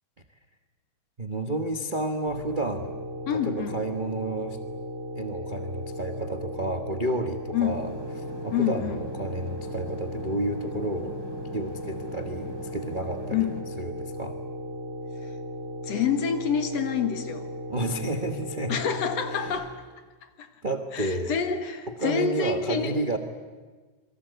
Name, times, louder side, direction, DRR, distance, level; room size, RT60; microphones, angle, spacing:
voice 1, 1.2-3.0 3.3-4.6 5.1-7.9 8.4-11.1 11.5-13.5 13.8-14.4 17.7-18.8 19.3-19.6 20.6-21.4 22.0-23.2, right 1 dB, 60° right, 0.5 m, -31 dB
sound 1, 2.3-19.5, equal, 30° right, 6.8 m, -37 dB
voice 2, 3.3-3.8 7.5-7.8 8.5-9.0 13.3-13.6 15.2-15.3 15.8-17.5 18.7-19.8 20.4-20.5 20.9-23.0, left 7 dB, 60° left, 2.6 m, -27 dB
sound 2, 7.7-13.6, left 1 dB, 30° left, 4.1 m, -43 dB
28.0 x 23.0 x 8.2 m
omnidirectional pair, 3.4 m